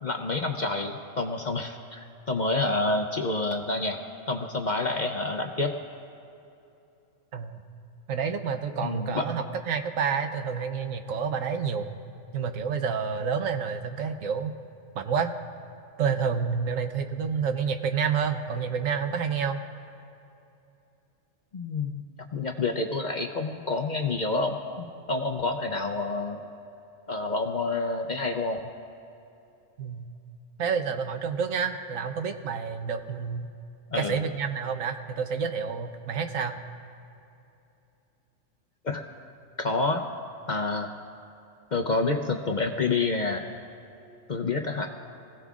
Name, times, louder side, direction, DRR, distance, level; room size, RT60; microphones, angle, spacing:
voice 1, 0.0-4.0 4.3-5.7 8.8-9.3 21.5-22.0 22.3-26.4 27.1-28.6 33.9-34.2 38.8-39.0 39.6-40.0 40.5-40.9 41.7-43.5 44.3-44.9, left 3 dB, 45° left, 3 dB, 0.6 m, -28 dB
voice 2, 7.3-7.6 8.1-11.9 12.3-14.5 14.9-15.3 16.0-19.6 29.8-30.0 30.6-33.5 34.0-36.6, right 6 dB, 80° right, 7 dB, 1.2 m, -29 dB
24.0 x 16.0 x 2.4 m, 2.8 s
omnidirectional pair, 1.4 m